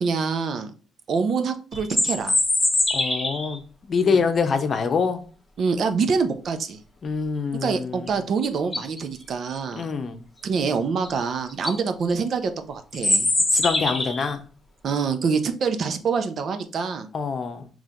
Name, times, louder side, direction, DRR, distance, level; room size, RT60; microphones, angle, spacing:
voice 1, 0.0-0.7 1.1-2.4 4.0-4.2 5.6-6.8 7.6-9.9 10.4-13.3 14.8-17.1, right 5 dB, 60° right, 0.6 m, -25 dB
sound 1, 1.7-3.6 8.1-8.2 8.6-9.0 11.0-11.1 11.5-11.8 12.9-14.3, left 2 dB, 20° left, 1.1 m, -23 dB
voice 2, 2.9-5.2 7.0-8.2 9.7-10.2 13.5-14.4 17.1-17.7, left 5 dB, 50° left, 0.7 m, -25 dB
5.5 x 3.1 x 2.5 m
cardioid pair, 90°, 0 cm